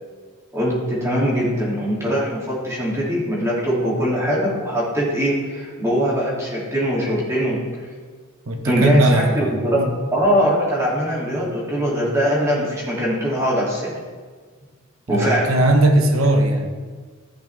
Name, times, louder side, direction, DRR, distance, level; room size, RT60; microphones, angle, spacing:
voice 1, 0.5-7.6 8.6-9.8 10.1-13.9 15.1-15.5, equal, 15° right, -7 dB, 2.9 m, -21 dB
voice 2, 8.5-9.9 15.1-16.7, right 1 dB, 70° right, 3 dB, 1.2 m, -19 dB
14.5 x 6.1 x 3.5 m, 1.5 s
head